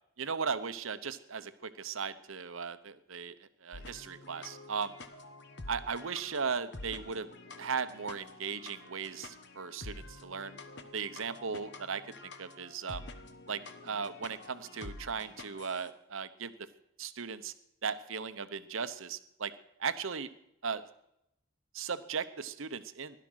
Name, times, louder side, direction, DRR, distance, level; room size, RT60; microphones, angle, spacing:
voice 1, 0.2-4.9 5.7-7.3 7.6-10.6 10.9-13.0 13.5-16.7 17.0-17.5 17.8-19.5 19.8-20.3 20.6-20.8 21.7-23.2, right 5 dB, 70° right, 12 dB, 0.9 m, -37 dB
sound 1, 3.7-15.9, left 2 dB, 55° left, 1.2 m, -49 dB
16.0 x 12.0 x 6.3 m, 0.81 s
head